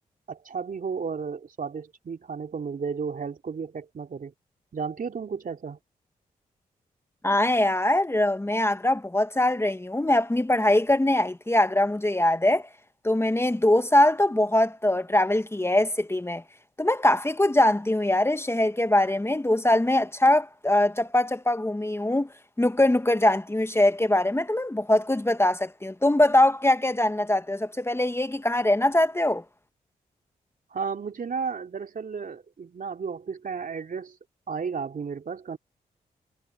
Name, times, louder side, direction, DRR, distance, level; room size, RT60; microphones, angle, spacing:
voice 1, 0.3-4.3 4.7-5.8 30.7-34.1 34.5-35.6, right 5 dB, 55° right, 3.4 m, -33 dB
voice 2, 7.2-12.7 13.0-16.4 16.8-22.3 22.6-29.4, left 1 dB, 15° left, 1.3 m, -22 dB
supercardioid pair, 45°, 17 cm